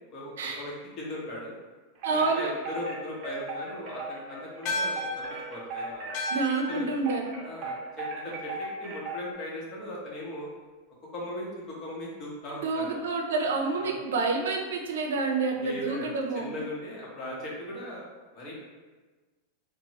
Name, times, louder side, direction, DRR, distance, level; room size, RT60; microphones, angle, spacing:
voice 1, 0.1-1.6 2.1-5.2 5.5-6.1 6.7-6.8 7.4-8.5 8.8-10.5 11.1-11.5 11.8-13.0 13.8-14.0 15.6-16.1 16.3-18.0 18.3-18.6, left 1 dB, 35° left, -4 dB, 0.8 m, -38 dB
Wind chime, 1.9-9.3, right 2 dB, 40° right, 0.6 m, -37 dB
voice 2, 2.0-2.5 6.3-7.3 12.5-16.5, right 3 dB, 90° right, 2 dB, 0.4 m, -28 dB
sound 1, 4.7-9.3, left 1 dB, 50° left, 0.4 m, -37 dB
2.9 x 2.0 x 2.8 m, 1.3 s
supercardioid pair, 150°, 0 cm